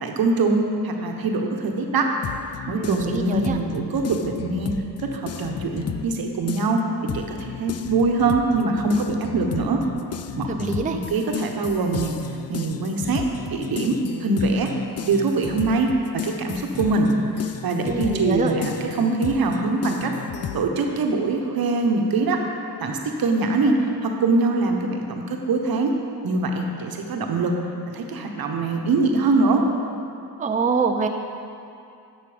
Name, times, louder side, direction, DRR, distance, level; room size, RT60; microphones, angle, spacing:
voice 1, 0.0-2.1 2.7-4.7 5.0-6.8 7.1-9.8 10.4-12.1 12.5-13.2 13.5-14.7 15.1-15.9 16.1-17.1 17.6-20.1 20.5-22.4 22.8-25.9 26.2-27.5 27.9-29.6, right 3 dB, 65° right, 2 dB, 1.2 m, -23 dB
sound 1, 2.2-6.2 6.5-20.6, left 8 dB, 40° left, 0.5 m, -33 dB
voice 2, 2.8-3.6 10.5-11.0 17.8-18.5 30.4-31.1, right 4 dB, 20° right, 4 dB, 0.5 m, -24 dB
10.5 x 6.2 x 5.1 m, 2.5 s
cardioid pair, 80°, 39 cm